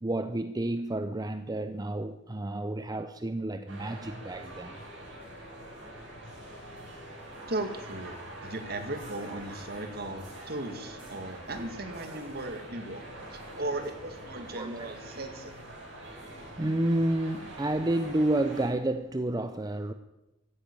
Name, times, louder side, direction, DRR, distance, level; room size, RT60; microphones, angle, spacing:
voice 1, 0.0-4.8 13.4-13.5 14.5-14.9 16.3-19.9, right 1 dB, 20° right, 0.6 m, -30 dB
sound 1, 3.7-18.7, right 1 dB, 75° right, 7.9 m, -45 dB
voice 2, 7.5-8.2 8.4-15.7, right 2 dB, 55° right, 2.1 m, -37 dB
15.5 x 9.9 x 8.9 m
head